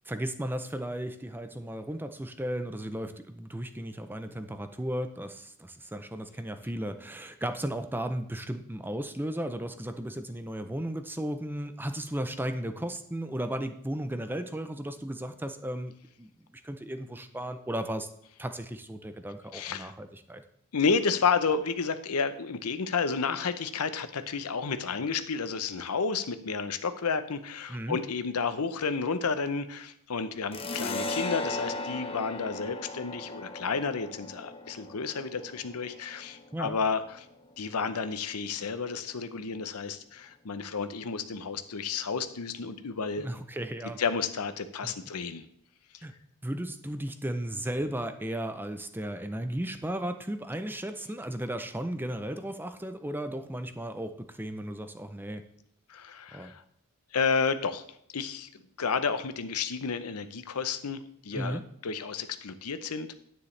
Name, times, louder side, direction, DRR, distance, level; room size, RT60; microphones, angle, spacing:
voice 1, 0.1-15.9 16.2-16.3 16.6-18.1 18.4-20.4 27.7-28.0 36.5-36.8 43.2-44.0 44.8-44.9 46.0-46.1 46.4-55.4 56.3-56.5 61.3-61.6, right 1 dB, 10° right, 9 dB, 0.6 m, -35 dB
voice 2, 19.5-19.9 20.7-37.3 37.6-43.3 44.0-45.4 45.9-46.0 55.9-56.6 57.1-57.8 58.1-58.5 58.8-61.0 61.2-63.1, left 5 dB, 90° left, 11 dB, 0.8 m, -31 dB
sound 1, 30.5-37.7, left 2 dB, 25° left, 0.9 m, -37 dB
9.9 x 9.4 x 3.3 m, 0.68 s
head